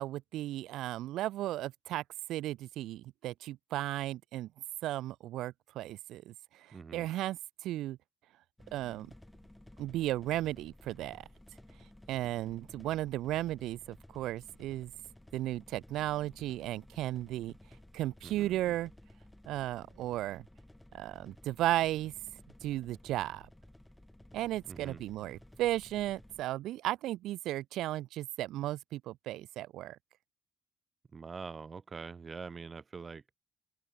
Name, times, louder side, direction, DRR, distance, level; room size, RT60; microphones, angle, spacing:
voice 1, 0.0-2.0 2.3-4.5 4.8-8.0 8.7-9.1 9.8-11.2 12.1-14.9 15.3-17.5 17.9-18.9 19.5-20.4 20.9-22.1 22.6-23.5 24.3-30.0, right 15 dB, 90° right, 1.0 m, -35 dB
voice 2, 6.7-7.1 18.2-18.7 24.7-25.0 31.1-33.2, right 5 dB, 35° right, 1.7 m, -44 dB
sound 1, 8.6-26.4, left 1 dB, 10° left, 5.9 m, -56 dB
open air
cardioid pair, 90°, 0 cm